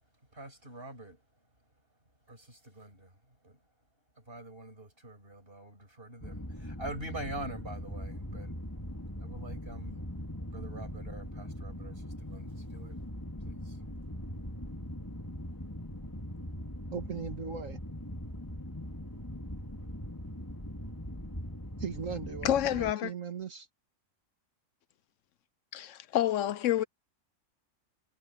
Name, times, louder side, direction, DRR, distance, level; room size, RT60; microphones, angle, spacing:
voice 1, 0.3-1.2 2.3-3.1 3.4-3.6 4.2-8.6 9.2-10.0 10.5-13.0 13.5-13.8, right 1 dB, 45° right, 7.8 m, -45 dB
sound 1, 6.2-22.9, left 1 dB, 15° left, 3.5 m, -41 dB
voice 2, 16.9-17.8 21.8-23.7, right 6 dB, 75° right, 2.2 m, -38 dB
voice 3, 22.4-23.1 25.7-26.8, left 12 dB, 70° left, 0.9 m, -28 dB
omnidirectional pair, 1.4 m